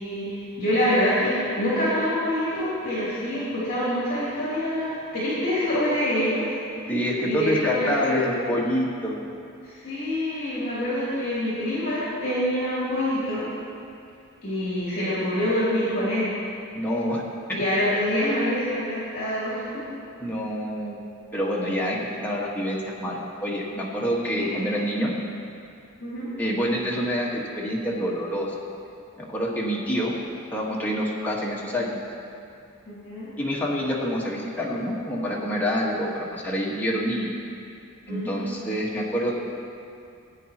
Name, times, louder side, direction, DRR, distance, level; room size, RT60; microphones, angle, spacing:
voice 1, 0.0-6.5 7.2-8.3 9.6-13.5 14.4-16.3 17.5-19.8 24.4-24.8 26.0-26.3 32.9-33.3 38.1-38.4, equal, 45° left, -10 dB, 3.0 m, -26 dB
voice 2, 6.9-9.2 16.7-17.2 17.5-17.6 20.2-21.0 21.3-25.1 26.4-28.5 29.2-30.2 30.5-32.0 33.4-37.3 38.1-39.3, equal, 10° left, -5 dB, 1.6 m, -27 dB
17.0 x 9.2 x 3.0 m, 2.5 s
head